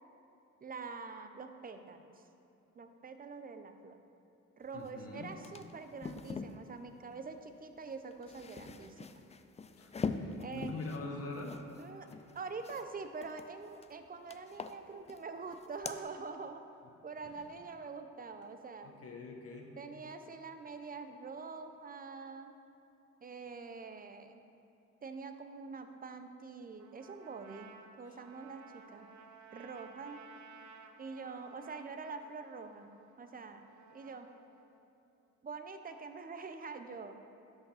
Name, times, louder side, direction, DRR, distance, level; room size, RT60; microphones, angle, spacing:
voice 1, 0.6-2.2 2.7-4.0 4.6-9.2 10.4-10.8 11.8-12.1 12.3-16.6 17.0-18.9 19.8-22.5 23.2-24.4 25.0-27.7 28.0-29.1 29.5-30.2 31.0-32.9 33.2-33.7 33.9-34.3 35.4-37.2, right 4 dB, 30° right, 8 dB, 0.7 m, -45 dB
voice 2, 4.7-5.3 9.8-12.2 17.2-17.5 18.8-19.7, left 3 dB, 50° left, 0 dB, 1.2 m, -44 dB
sound 1, 4.9-5.0 5.2-6.6 7.9-12.9 13.2-13.9 14.3-15.3 15.5-16.0, left 5 dB, 20° left, 0.4 m, -43 dB
Trumpet, 26.8-34.8, right 5 dB, 75° right, 0.7 m, -57 dB
11.5 x 5.4 x 4.1 m, 2.9 s
cardioid pair, 90°, 30 cm